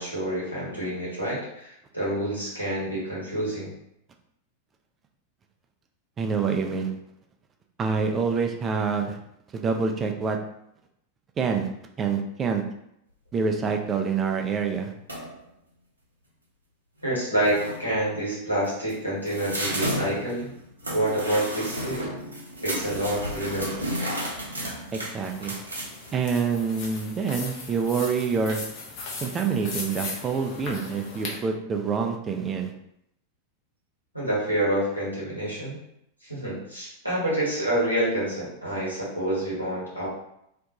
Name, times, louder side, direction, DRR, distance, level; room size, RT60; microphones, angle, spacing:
voice 1, 0.0-3.7 17.0-20.5 20.9-22.1 22.6-23.9 34.1-35.8 36.2-40.1, right 1 dB, 90° left, -7 dB, 1.1 m, -28 dB
voice 2, 6.2-6.9 7.8-9.2 9.5-10.4 11.4-11.7 12.0-12.6 13.3-14.9 24.9-25.5 26.1-28.6 29.2-32.7, right 5 dB, 25° right, 3 dB, 0.3 m, -26 dB
sound 1, 15.1-15.4 17.0-17.1 17.4-17.9 18.6-26.1, equal, 80° right, 0.5 m, -32 dB
sound 2, 25.2-31.4, left 3 dB, 45° left, 0.6 m, -38 dB
2.4 x 2.1 x 2.8 m, 0.78 s
figure-of-eight pair, 90°, 0 cm